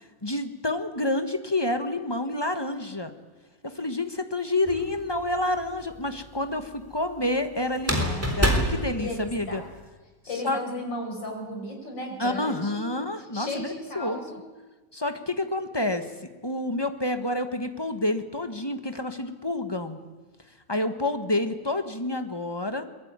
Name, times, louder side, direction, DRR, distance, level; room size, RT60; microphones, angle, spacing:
voice 1, 0.0-3.1 3.6-9.6 10.4-10.6 12.2-13.7 13.9-14.4 14.9-16.1 16.4-20.0 20.7-22.8, left 2 dB, 15° left, 8 dB, 1.4 m, -28 dB
sound 1, 4.7-5.3 7.8-9.8, equal, 10° right, 3.6 m, -26 dB
voice 2, 9.0-9.6 10.3-12.9 13.3-14.4, left 1 dB, 85° left, 1 dB, 6.1 m, -35 dB
22.0 x 22.0 x 9.7 m, 1.2 s
omnidirectional pair, 1.9 m